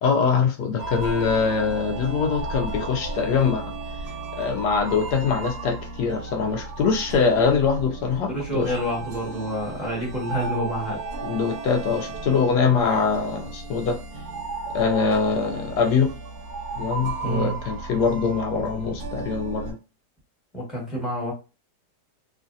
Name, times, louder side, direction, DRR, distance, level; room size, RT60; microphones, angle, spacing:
voice 1, 0.0-3.7 4.3-8.7 11.2-14.0 14.7-16.1 16.8-19.8, left 5 dB, 80° left, 1.2 m, -23 dB
sound 1, 0.8-19.7, right 3 dB, 70° right, 1.2 m, -34 dB
voice 2, 8.3-11.0 17.2-17.5 20.5-21.3, right 1 dB, ahead, 1.3 m, -28 dB
3.1 x 2.4 x 2.5 m
omnidirectional pair, 1.8 m